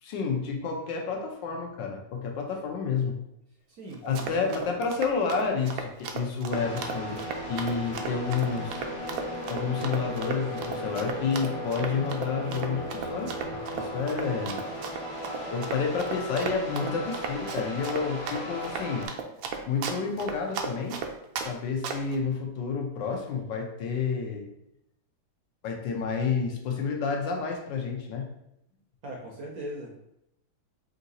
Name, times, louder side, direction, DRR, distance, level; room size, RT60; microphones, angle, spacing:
voice 1, 0.0-3.2 4.0-8.8 9.5-14.6 15.4-19.1 19.7-21.0 21.4-24.5 25.6-28.3, left 5 dB, 75° left, 1 dB, 1.4 m, -30 dB
voice 2, 3.7-4.6 29.0-30.0, right 1 dB, 65° right, -1 dB, 0.9 m, -40 dB
Run, 3.9-21.5 21.8-22.2, right 6 dB, 85° right, 1.3 m, -35 dB
sound 1, 6.5-19.1, equal, 45° left, 0.4 m, -36 dB
3.7 x 2.6 x 4.0 m, 0.80 s
omnidirectional pair, 2.1 m